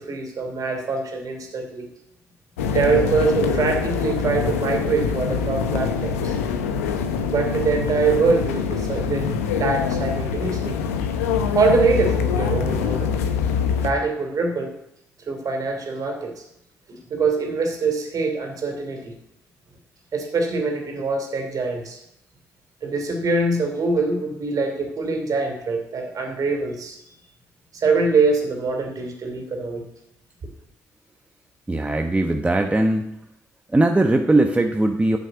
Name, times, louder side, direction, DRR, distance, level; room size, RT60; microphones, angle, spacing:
voice 1, 0.0-1.9 2.7-6.3 7.3-9.2 9.6-10.8 11.5-13.1 13.8-14.7 15.3-16.4 16.9-19.1 20.1-22.0 22.8-27.0 27.7-29.8, right 4 dB, 55° right, 3 dB, 2.9 m, -23 dB
sound 1, 2.6-13.9, left 6 dB, 90° left, 0.8 m, -24 dB
voice 2, 31.7-33.1 33.7-35.2, right 2 dB, 15° right, 4 dB, 1.0 m, -19 dB
9.2 x 6.4 x 8.1 m, 0.80 s
hypercardioid pair, 50°, 7 cm